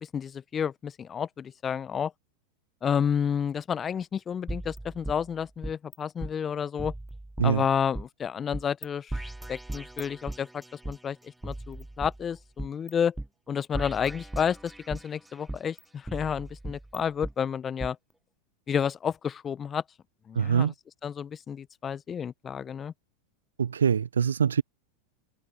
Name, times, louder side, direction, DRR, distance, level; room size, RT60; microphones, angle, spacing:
voice 1, 0.0-2.1 2.8-6.9 7.4-11.2 11.4-13.1 13.5-18.0 18.7-19.8 20.3-20.7 21.0-22.9, left 7 dB, 25° left, 1.1 m, -30 dB
sound 1, 4.5-6.0 6.2-6.3 6.8-8.1 8.5-8.9 9.1-11.0 11.4-12.9 13.2-13.3 13.7-15.1 15.5-17.3 17.8-17.9, right 1 dB, 5° right, 0.9 m, -38 dB
voice 2, 20.4-20.7 23.6-24.6, right 7 dB, 75° right, 0.4 m, -24 dB
figure-of-eight pair, 90°, 0 cm